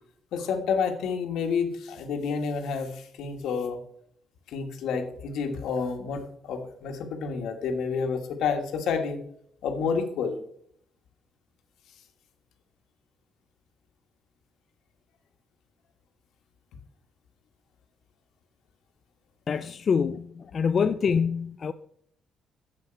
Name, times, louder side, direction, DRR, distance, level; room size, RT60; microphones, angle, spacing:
voice 1, 0.3-3.8 4.5-9.2 9.6-10.4, left 5 dB, 80° left, 1.5 m, -29 dB
voice 2, 19.5-21.7, left 6 dB, 50° left, 0.4 m, -25 dB
7.6 x 7.5 x 4.5 m
cardioid pair, 90°, 0 cm